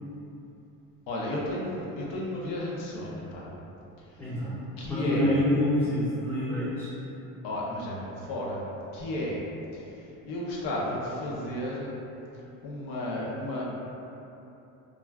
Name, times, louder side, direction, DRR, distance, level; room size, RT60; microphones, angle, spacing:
voice 1, 1.1-3.5 4.1-4.2 4.8-5.4 7.4-8.6 8.9-9.4 9.7-12.0 12.6-13.6, left 1 dB, 90° left, -5 dB, 0.6 m, -33 dB
voice 2, 4.2-4.5 4.9-6.9, left 1 dB, 5° left, -14 dB, 0.5 m, -27 dB
2.3 x 2.2 x 3.3 m, 2.9 s
cardioid pair, 135°, 33 cm